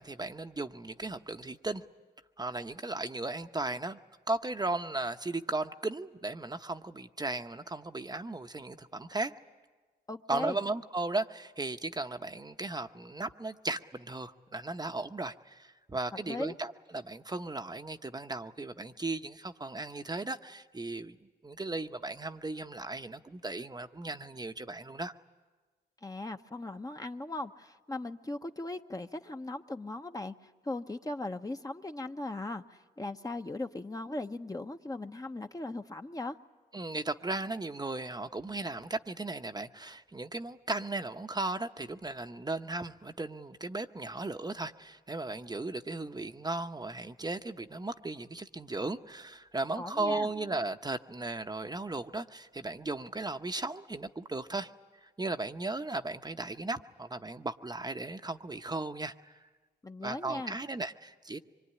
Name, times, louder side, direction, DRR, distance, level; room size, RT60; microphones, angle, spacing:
voice 1, 0.0-1.8 2.4-4.0 4.3-9.3 10.3-21.2 21.4-25.1 36.7-54.7 55.0-59.4 60.0-61.4, right 2 dB, 20° right, 7 dB, 0.9 m, -36 dB
voice 2, 10.1-10.6 16.3-16.5 26.0-36.4 49.8-50.3 59.8-60.6, left 2 dB, 20° left, 6 dB, 0.9 m, -38 dB
25.0 x 23.0 x 9.9 m, 1.3 s
cardioid pair, 70°, 18 cm